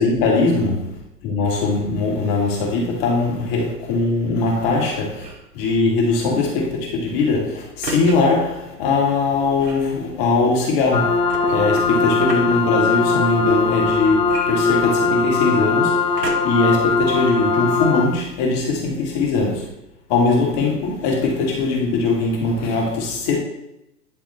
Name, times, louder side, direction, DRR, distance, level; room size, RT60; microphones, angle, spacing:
voice 1, 0.0-11.2 11.5-16.0 16.4-19.7 20.1-23.4, left 3 dB, 35° left, 2.4 m, -21 dB
sound 1, 5.1-5.5 7.8-8.2 9.6-9.9 11.3-12.6 14.2-15.2 16.2-16.7 17.4-17.5, right 4 dB, 80° right, 1.3 m, -33 dB
sound 2, 10.9-18.0, left 4 dB, 75° left, 1.4 m, -20 dB
10.5 x 3.6 x 4.3 m
hypercardioid pair, 130°, 48 cm